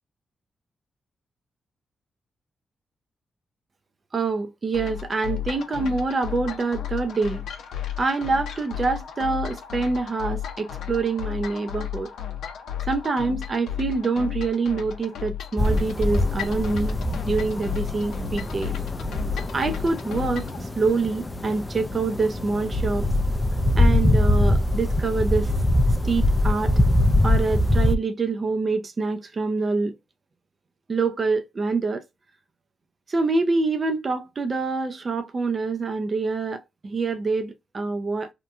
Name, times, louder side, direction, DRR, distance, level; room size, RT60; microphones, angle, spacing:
voice 1, 4.1-7.4 8.0-12.1 12.9-17.0 17.3-18.7 19.5-23.1 23.8-25.5 26.0-26.7 27.2-29.9 30.9-32.0 33.1-38.3, right 3 dB, 40° right, 0.5 m, -26 dB
sound 1, 4.7-20.6, left 10 dB, 90° left, 0.5 m, -34 dB
sound 2, 15.6-28.0, left 1 dB, 20° left, 0.3 m, -23 dB
2.9 x 2.1 x 2.4 m
cardioid pair, 80°, 0 cm